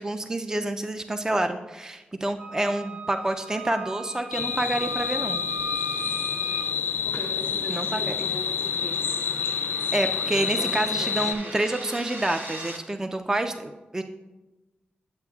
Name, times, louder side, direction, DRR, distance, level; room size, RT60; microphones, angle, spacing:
voice 1, 0.0-5.4 7.7-8.3 9.9-14.0, right 1 dB, 15° right, 7 dB, 0.4 m, -28 dB
Wind instrument woodwind instrument, 2.4-6.7, right 2 dB, 30° right, 0.8 m, -38 dB
sound 1, 4.3-11.3, left 7 dB, 85° left, 0.5 m, -28 dB
sound 2, 5.1-12.8, right 1 dB, 60° right, 1.0 m, -43 dB
voice 2, 7.0-9.0 10.3-11.5, equal, 80° right, -2 dB, 1.6 m, -40 dB
9.4 x 7.6 x 2.3 m, 1.1 s
cardioid pair, 75°, 4 cm